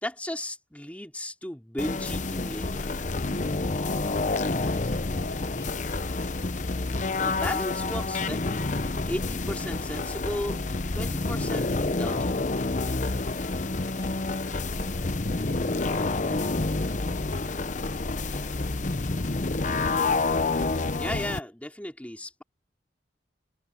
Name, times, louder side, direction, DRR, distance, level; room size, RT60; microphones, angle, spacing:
voice 1, 0.0-3.1 7.2-8.7 9.0-10.6 10.9-12.4 20.9-22.4, left 1 dB, 10° left, 3.3 m, -35 dB
sound 1, 1.8-21.4, left 3 dB, 45° left, 0.8 m, -28 dB
voice 2, 3.7-6.7, left 2 dB, 70° left, 7.9 m, -51 dB
head